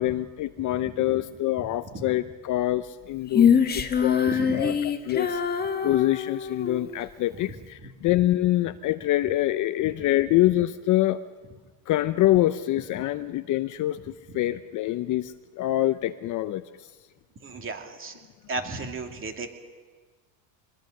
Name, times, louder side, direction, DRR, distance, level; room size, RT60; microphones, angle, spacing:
voice 1, 0.0-11.2 11.9-16.6, left 15 dB, 40° left, 12 dB, 0.7 m, -25 dB
Female singing, 3.3-6.8, left 7 dB, 20° left, 1.5 m, -24 dB
voice 2, 4.3-4.7 7.8-7.9 17.4-18.2 18.5-19.5, right 3 dB, 25° right, 5 dB, 2.5 m, -34 dB
24.0 x 21.0 x 6.5 m, 1.4 s
supercardioid pair, 130°, 49 cm